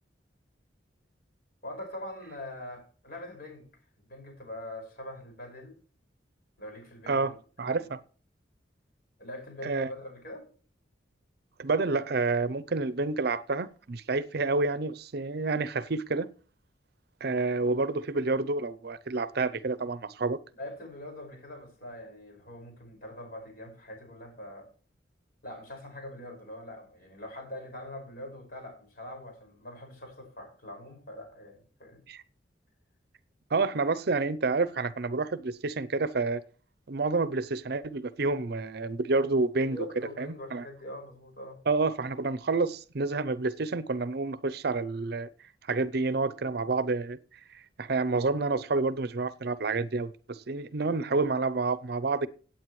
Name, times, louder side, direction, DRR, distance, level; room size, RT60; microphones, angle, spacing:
voice 1, 1.6-3.7 4.0-5.8 6.6-7.4 7.6-7.9 9.2-10.5 17.2-17.4 20.6-24.7 25.4-32.0 39.6-41.6, left 1 dB, 55° left, 5.6 m, -43 dB
voice 2, 7.1-8.0 9.6-9.9 11.6-16.3 17.2-20.4 32.1-32.2 33.5-36.4 36.9-39.8 40.2-40.7 41.7-45.3 45.7-47.2 47.5-52.3, right 3 dB, 55° right, 0.6 m, -29 dB
17.0 x 8.8 x 3.1 m
head